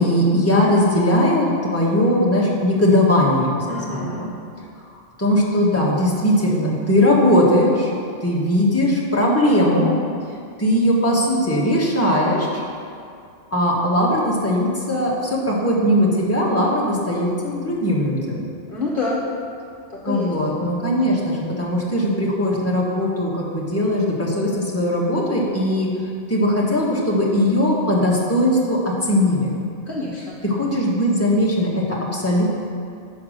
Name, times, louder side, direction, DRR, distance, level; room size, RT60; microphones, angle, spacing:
voice 1, 0.0-4.3 5.2-7.9 8.2-9.9 10.6-12.6 13.5-18.4 20.0-25.9 26.3-29.5 30.4-32.4, left 1 dB, 15° left, -5 dB, 1.3 m, -19 dB
voice 2, 3.7-4.3 18.7-19.2 19.9-20.3 29.9-30.4, left 2 dB, 55° left, -4 dB, 1.1 m, -27 dB
7.1 x 5.4 x 6.5 m, 2.4 s
omnidirectional pair, 1.2 m